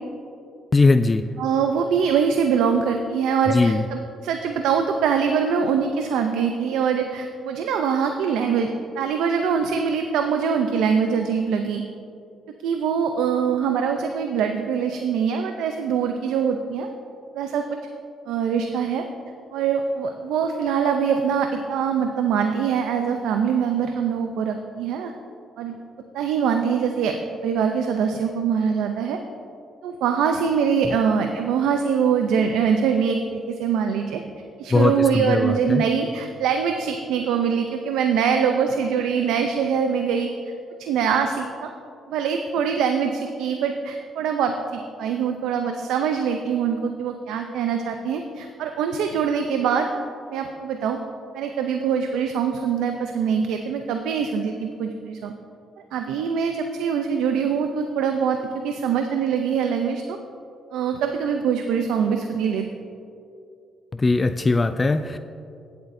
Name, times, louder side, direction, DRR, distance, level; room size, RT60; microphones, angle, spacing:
voice 1, 0.7-1.3 3.5-3.8 34.7-35.8 63.9-65.2, left 3 dB, 25° left, 11 dB, 0.3 m, -20 dB
voice 2, 1.4-11.8 12.6-16.9 17.3-17.8 18.3-19.0 19.5-25.1 25.6-25.8 26.1-27.2 27.4-29.2 29.8-34.2 34.6-40.3 40.8-41.7 42.1-49.9 50.3-51.0 51.3-55.3 55.9-60.2 60.7-62.7, right 6 dB, 90° right, 5 dB, 0.5 m, -23 dB
15.5 x 8.0 x 2.6 m, 2.5 s
cardioid pair, 90°, 0 cm